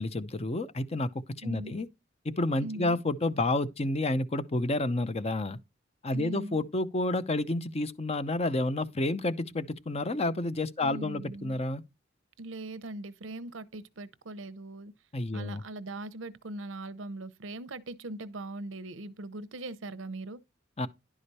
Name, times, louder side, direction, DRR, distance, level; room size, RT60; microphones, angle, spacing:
voice 1, 0.0-1.9 2.2-5.6 6.0-11.8 15.1-15.6 20.8-20.9, left 2 dB, 35° left, 0.7 m, -30 dB
voice 2, 1.4-1.8 2.6-3.0 6.1-6.6 10.8-11.6 12.4-14.9 15.3-20.4, right 2 dB, 90° right, 0.8 m, -40 dB
11.0 x 4.9 x 4.2 m
head